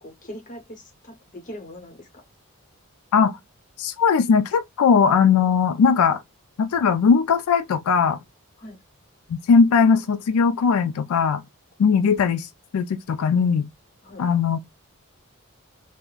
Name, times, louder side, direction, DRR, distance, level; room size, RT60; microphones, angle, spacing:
voice 1, 0.0-2.2 8.6-8.8 14.0-14.3, left 1 dB, 35° left, 1.0 m, -41 dB
voice 2, 3.8-6.2 6.6-8.2 9.3-11.4 11.8-13.7 14.2-14.6, left 6 dB, 85° left, 0.4 m, -19 dB
3.6 x 2.1 x 2.3 m
head